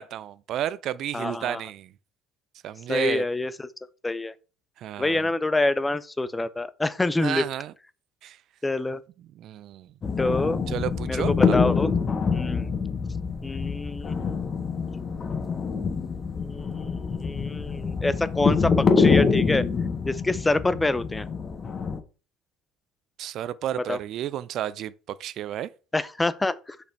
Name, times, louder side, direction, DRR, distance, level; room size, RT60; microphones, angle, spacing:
voice 1, 0.0-1.9 2.6-3.2 4.8-5.2 7.2-7.7 8.2-8.4 9.4-9.9 10.7-11.5 23.2-25.7, right 11 dB, 50° right, 0.4 m, -32 dB
voice 2, 1.1-1.6 2.9-3.7 4.0-4.3 5.0-7.4 8.6-9.0 10.2-10.6 11.1-11.9 12.3-12.7 13.4-14.2 16.4-19.6 20.0-21.3 23.7-24.0 25.9-26.8, left 2 dB, 15° left, 0.6 m, -26 dB
sound 1, 10.0-22.0, left 5 dB, 30° left, 1.3 m, -25 dB
6.5 x 5.2 x 4.5 m
hypercardioid pair, 65°, 0 cm